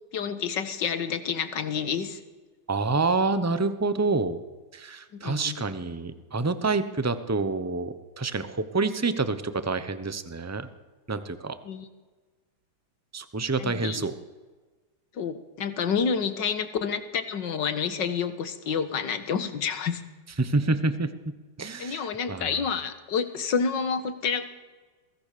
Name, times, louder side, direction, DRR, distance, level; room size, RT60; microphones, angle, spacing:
voice 1, 0.1-2.2 5.2-5.6 11.6-11.9 13.6-14.1 15.2-20.0 21.8-24.5, left 6 dB, 65° left, 11 dB, 2.1 m, -29 dB
voice 2, 2.7-4.4 4.7-10.7 11.1-11.6 13.1-14.1 20.4-21.1 21.6-22.6, right 3 dB, 20° right, 12 dB, 0.4 m, -27 dB
23.0 x 17.0 x 6.8 m, 1.3 s
omnidirectional pair, 2.2 m